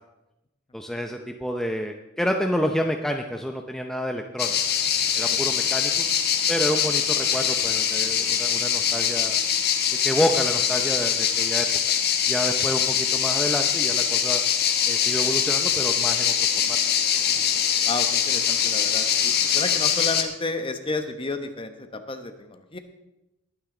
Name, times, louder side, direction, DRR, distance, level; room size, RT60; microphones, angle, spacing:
voice 1, 0.7-4.6 5.1-6.0 6.5-9.4 10.0-11.7 12.3-14.4 14.9-16.3 16.6-16.8, equal, ahead, 3 dB, 0.6 m, -28 dB
sound 1, 4.4-20.2, left 8 dB, 45° left, 1.2 m, -23 dB
voice 2, 17.3-22.8, left 3 dB, 25° left, 7 dB, 1.0 m, -32 dB
21.0 x 9.3 x 3.8 m, 0.96 s
head